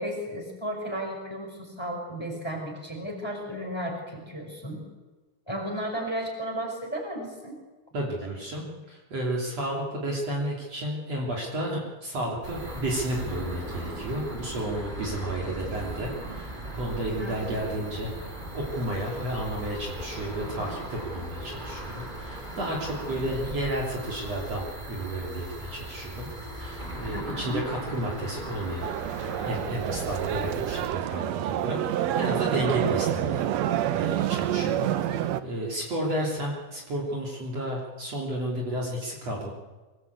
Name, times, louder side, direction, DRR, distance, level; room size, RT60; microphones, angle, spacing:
voice 1, 0.0-4.8 5.5-7.6 17.2-17.6 27.1-27.6, right 1 dB, 5° left, 1 dB, 5.0 m, -34 dB
voice 2, 7.9-26.3 26.6-28.9 29.2-33.5 33.9-39.5, right 1 dB, 45° right, -2 dB, 4.1 m, -32 dB
sound 1, 12.4-30.9, right 1 dB, 10° right, 3.4 m, -38 dB
sound 2, 28.8-35.4, right 11 dB, 80° right, 1.5 m, -28 dB
24.0 x 19.5 x 8.3 m, 1.2 s
omnidirectional pair, 4.2 m